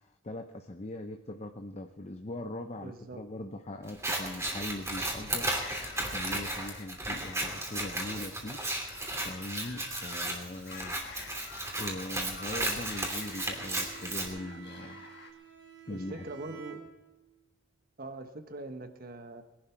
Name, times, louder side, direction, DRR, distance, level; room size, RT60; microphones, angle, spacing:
voice 1, 0.0-11.0 11.8-15.1 15.9-16.2, left 1 dB, 35° left, 6 dB, 0.8 m, -41 dB
voice 2, 2.8-3.2 15.9-16.8 18.0-19.4, right 2 dB, 50° right, 8 dB, 1.2 m, -42 dB
Scissors, 3.9-14.3, right 1 dB, 15° right, 2.8 m, -35 dB
sound 1, 5.6-15.3, left 6 dB, 60° left, 1.4 m, -49 dB
Bowed string instrument, 12.8-17.4, right 9 dB, 70° right, 2.9 m, -50 dB
21.0 x 11.5 x 4.6 m, 1.2 s
head